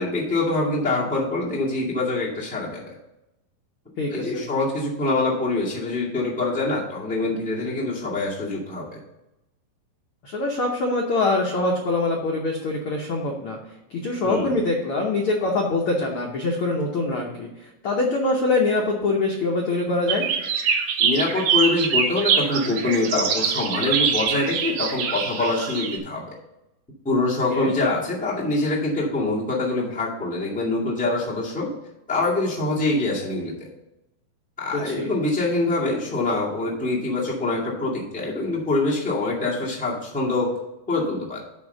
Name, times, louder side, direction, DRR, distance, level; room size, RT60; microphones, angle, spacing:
voice 1, 0.0-2.9 4.1-9.0 14.2-14.6 21.0-26.2 27.0-31.7 32.1-33.7 34.6-40.5 40.9-41.4, left 2 dB, 5° left, -5 dB, 1.1 m, -25 dB
voice 2, 4.0-4.4 10.2-13.6 13.9-20.3 27.5-27.7 34.8-35.1, left 2 dB, 80° left, -1 dB, 1.2 m, -24 dB
sound 1, 20.1-26.0, right 6 dB, 70° right, 1.9 m, -24 dB
10.5 x 3.6 x 6.6 m, 0.92 s
omnidirectional pair, 3.9 m